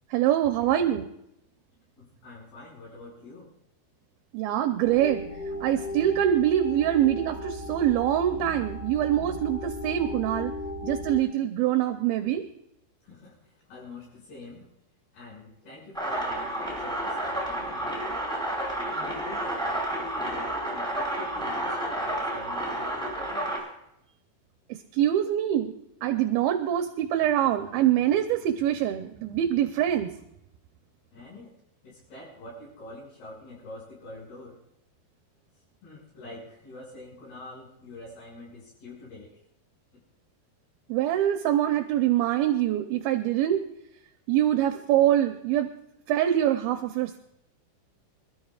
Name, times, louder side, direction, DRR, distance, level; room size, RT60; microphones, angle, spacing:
voice 1, 0.1-1.1 4.3-5.2 5.6-10.5 10.8-12.4 24.9-25.7 26.0-30.1 40.9-43.6 44.3-45.7 46.1-47.2, right 11 dB, 80° right, 6 dB, 2.6 m, -24 dB
voice 2, 2.0-3.5 13.0-14.7 15.1-16.5 16.8-18.3 18.8-23.6 31.1-31.5 31.8-34.6 35.8-39.4, left 2 dB, 90° left, -7 dB, 8.3 m, -45 dB
sound 1, 4.8-11.2, left 2 dB, 65° left, 1.8 m, -36 dB
sound 2, 15.9-23.6, right 1 dB, ahead, 4.6 m, -30 dB
26.5 x 13.0 x 2.4 m, 0.79 s
omnidirectional pair, 4.5 m